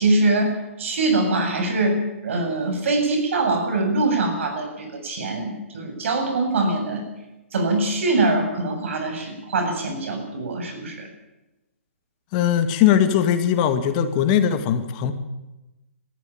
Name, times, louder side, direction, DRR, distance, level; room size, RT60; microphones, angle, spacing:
voice 1, 0.0-7.0 7.5-11.1, right 2 dB, 65° right, 4 dB, 7.7 m, -23 dB
voice 2, 12.3-15.1, left 9 dB, 35° left, 9 dB, 2.3 m, -20 dB
20.5 x 14.5 x 9.1 m, 1.0 s
hypercardioid pair, 145°, 7 cm